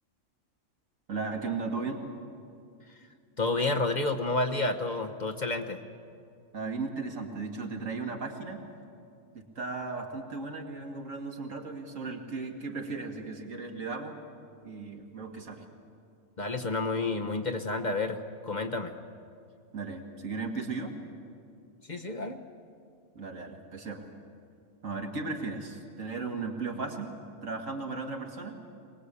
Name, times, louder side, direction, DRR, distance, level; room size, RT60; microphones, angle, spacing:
voice 1, 1.1-2.0 6.5-8.6 9.3-14.2 14.6-15.6 19.7-21.0 23.1-24.1 24.8-27.1 27.4-28.6, right 4 dB, 75° right, 2 dB, 2.4 m, -36 dB
voice 2, 3.4-5.8 16.4-18.9 21.8-22.4, left 2 dB, 35° left, 4 dB, 1.0 m, -30 dB
23.5 x 20.0 x 8.4 m, 2.4 s
omnidirectional pair, 1.4 m